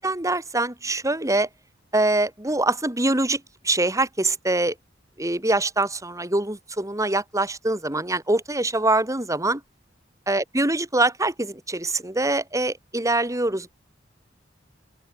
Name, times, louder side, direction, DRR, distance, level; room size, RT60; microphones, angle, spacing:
voice 1, 0.0-1.5 1.9-4.7 5.2-9.6 10.3-13.7, right 2 dB, 20° right, 3.1 m, -24 dB
open air
head